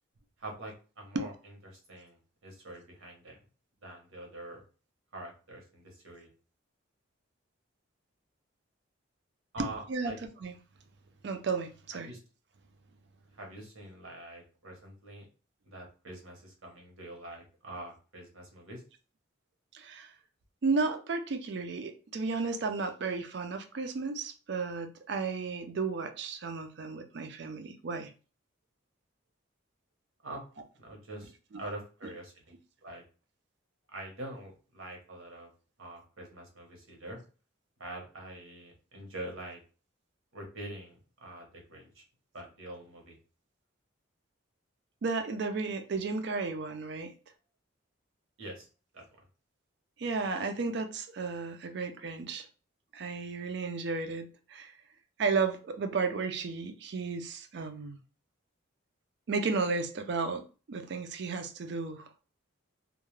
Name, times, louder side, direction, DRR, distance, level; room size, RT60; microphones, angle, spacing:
voice 1, 0.4-3.4 3.8-4.6 5.1-6.3 9.5-10.2 12.0-12.2 13.3-15.2 15.6-18.8 30.2-30.4 30.8-32.5 32.8-33.0 33.9-35.5 35.8-37.2 37.8-39.6 40.3-42.0 42.3-43.2 48.4-48.7 48.9-49.3, right 1 dB, 85° right, 1.0 m, -45 dB
voice 2, 9.6-10.1 10.4-10.5 11.2-12.1 19.7-20.1 20.6-28.1 45.0-47.1 50.0-52.5 52.9-54.7 55.2-58.0 59.3-60.4 60.7-62.1, right 4 dB, 55° right, 0.4 m, -33 dB
2.3 x 2.1 x 3.0 m
head